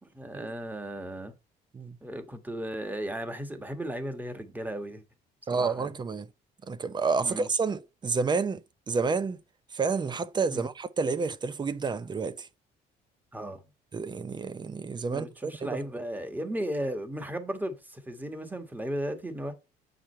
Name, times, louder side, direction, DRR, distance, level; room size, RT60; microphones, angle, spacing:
voice 1, 0.0-1.3 2.0-5.0 5.5-5.9 7.2-7.5 10.5-10.7 13.3-13.6 15.1-19.5, right 1 dB, 10° right, 1.4 m, -35 dB
voice 2, 5.5-6.3 6.6-9.4 9.7-12.5 13.9-15.8, right 4 dB, 25° right, 0.6 m, -30 dB
7.5 x 5.0 x 4.4 m
cardioid pair, 110°, 17 cm